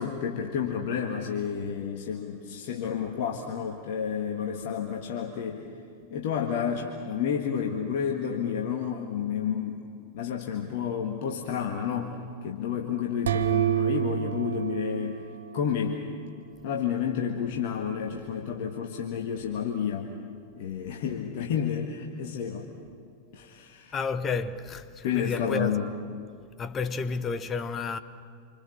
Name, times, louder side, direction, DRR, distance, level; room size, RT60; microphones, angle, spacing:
voice 1, 0.0-5.6 6.1-9.8 10.1-15.2 15.5-16.0 16.6-20.1 20.6-22.7 23.3-24.0 25.0-25.9, left 7 dB, 50° left, 1.8 m, -30 dB
sound 1, 13.3-16.0, right 12 dB, 65° right, 1.1 m, -28 dB
voice 2, 23.9-25.8 26.6-28.0, left 5 dB, 25° left, 1.2 m, -31 dB
27.5 x 25.5 x 7.2 m
figure-of-eight pair, 90°, 0 cm